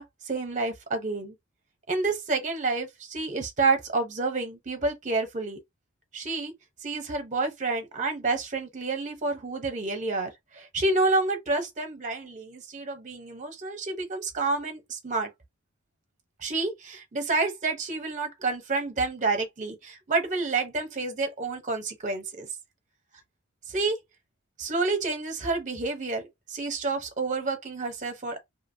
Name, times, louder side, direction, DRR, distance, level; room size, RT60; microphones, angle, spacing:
voice 1, 0.0-1.3 1.9-5.6 6.1-6.5 6.8-15.3 16.4-22.5 23.7-24.0 24.6-28.4, right 3 dB, 35° right, 0.8 m, -29 dB
2.8 x 2.1 x 2.6 m
head